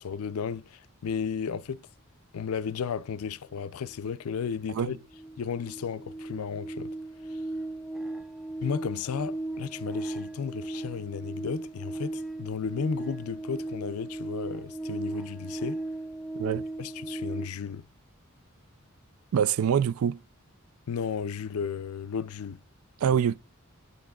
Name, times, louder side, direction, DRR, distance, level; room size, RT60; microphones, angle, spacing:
voice 1, 0.0-1.9 2.3-5.0 5.4-6.9 7.3-7.4 8.6-15.8 16.8-17.8 20.9-22.6 23.1-23.2, left 6 dB, 85° left, 0.4 m, -34 dB
sound 1, 3.9-4.0 4.3-17.5, right 2 dB, ahead, 0.4 m, -37 dB
voice 2, 16.3-16.7 19.3-20.2 23.0-23.4, right 8 dB, 75° right, 0.3 m, -25 dB
8.1 x 6.9 x 2.3 m
head